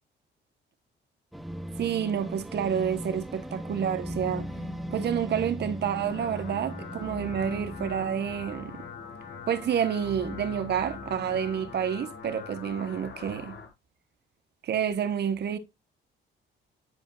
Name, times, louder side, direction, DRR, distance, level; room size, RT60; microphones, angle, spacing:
sound 1, 1.3-9.9, right 1 dB, ahead, 0.9 m, -39 dB
voice 1, 1.8-4.5 4.9-8.8 9.5-13.6 14.6-15.6, right 8 dB, 60° right, 1.1 m, -29 dB
sound 2, 4.0-11.8, left 3 dB, 45° left, 1.9 m, -46 dB
sound 3, 5.7-13.7, left 6 dB, 65° left, 1.7 m, -43 dB
9.6 x 5.0 x 2.4 m
cardioid pair, 90°, 20 cm